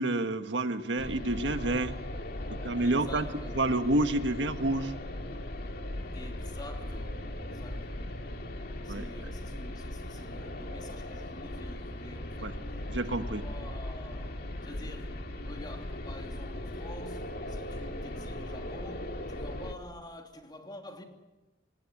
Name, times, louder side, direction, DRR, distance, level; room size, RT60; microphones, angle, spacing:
voice 1, 0.0-2.0 2.5-3.2 3.5-4.9 8.9-9.0 12.4-12.5 12.9-13.4, right 2 dB, 75° right, 1.6 m, -29 dB
sound 1, 1.0-19.7, left 1 dB, 60° left, 2.2 m, -38 dB
voice 2, 2.8-3.6 6.1-8.3 8.8-12.8 13.0-21.1, left 1 dB, 25° left, 3.0 m, -48 dB
26.0 x 20.0 x 7.4 m
head